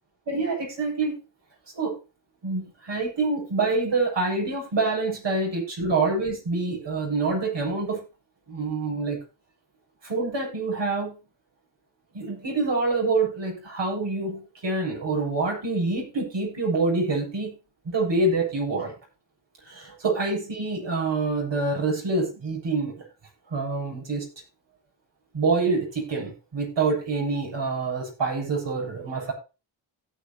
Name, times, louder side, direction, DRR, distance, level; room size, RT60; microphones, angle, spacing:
voice 1, 0.3-1.2 1.7-2.0 2.4-8.0 8.5-9.2 10.0-11.1 12.1-17.5 17.8-18.9 19.6-23.1 23.5-24.3 25.3-29.3, right 3 dB, 60° right, 0 dB, 7.8 m, -26 dB
17.0 x 6.2 x 4.2 m, 0.30 s
cardioid pair, 55°, 48 cm